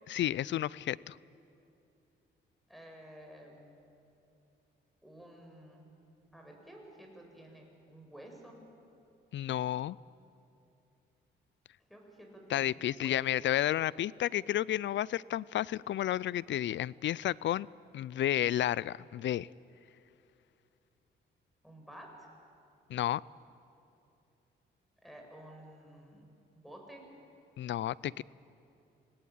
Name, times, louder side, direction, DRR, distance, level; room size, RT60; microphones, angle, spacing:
voice 1, 0.1-1.2 9.3-10.0 12.5-17.7 17.9-19.5 22.9-23.2 27.6-28.2, left 12 dB, 65° left, 23 dB, 0.5 m, -31 dB
voice 2, 2.7-3.8 5.0-5.8 6.3-8.6 11.9-12.7 13.0-13.6 21.6-22.3 25.0-27.0, right 1 dB, ahead, 1 dB, 7.3 m, -52 dB
27.0 x 18.5 x 8.9 m, 2.7 s
cardioid pair, 70°, 21 cm